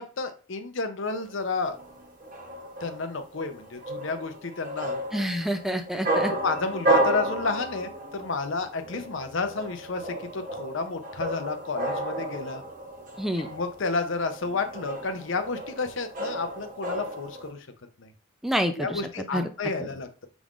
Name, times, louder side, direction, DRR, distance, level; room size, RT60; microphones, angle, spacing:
voice 1, 0.0-1.8 2.8-5.0 6.3-12.6 13.4-17.7 18.0-18.1 18.8-20.3, left 4 dB, 60° left, 7 dB, 0.6 m, -31 dB
sound 1, 1.1-17.5, right 1 dB, 40° right, 0.9 m, -32 dB
voice 2, 5.1-6.3 13.2-13.5 18.4-19.0 19.3-19.5 19.8-19.9, equal, ahead, 7 dB, 0.4 m, -27 dB
6.0 x 3.6 x 2.5 m, 0.35 s
head